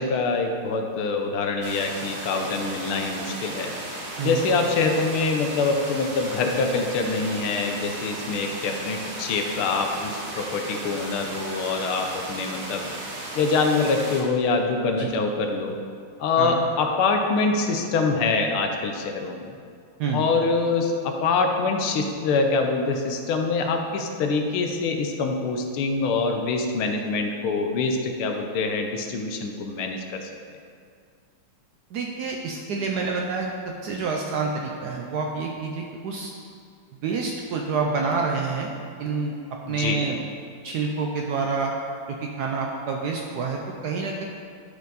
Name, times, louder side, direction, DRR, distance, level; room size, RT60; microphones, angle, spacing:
voice 1, 0.0-3.7 4.2-12.9 13.3-15.8 16.2-19.6 20.1-30.3 39.6-40.0, left 4 dB, 80° left, 4 dB, 1.6 m, -25 dB
sound 1, 1.6-14.2, right 1 dB, 45° right, 1.4 m, -35 dB
voice 2, 4.2-4.5 15.0-15.1 16.4-16.6 20.0-20.2 31.9-36.3 37.0-38.7 39.0-39.3 39.7-40.2 40.6-41.7 42.1-44.2, right 4 dB, 80° right, 0 dB, 0.9 m, -28 dB
12.0 x 4.5 x 4.0 m, 2.2 s
omnidirectional pair, 2.4 m